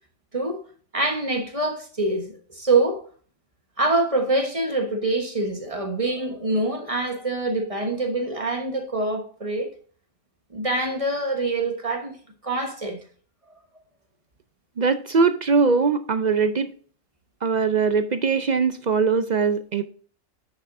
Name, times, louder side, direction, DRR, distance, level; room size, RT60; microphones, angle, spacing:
voice 1, 0.9-3.0 3.8-9.7 10.5-12.2 12.4-13.0, right 2 dB, 25° right, 1.1 m, -25 dB
voice 2, 14.8-16.7 17.4-19.8, right 5 dB, 65° right, 0.4 m, -21 dB
9.9 x 6.6 x 2.6 m
omnidirectional pair, 1.4 m